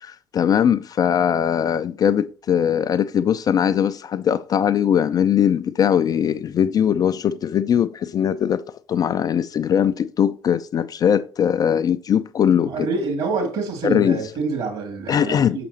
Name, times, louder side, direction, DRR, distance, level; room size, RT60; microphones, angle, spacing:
voice 1, 0.0-8.6 8.9-12.9 13.8-14.2 15.1-15.6, left 8 dB, 35° left, 0.3 m, -20 dB
voice 2, 12.6-15.7, right 4 dB, 50° right, 2.4 m, -27 dB
6.6 x 5.8 x 2.8 m
figure-of-eight pair, 55°, 11 cm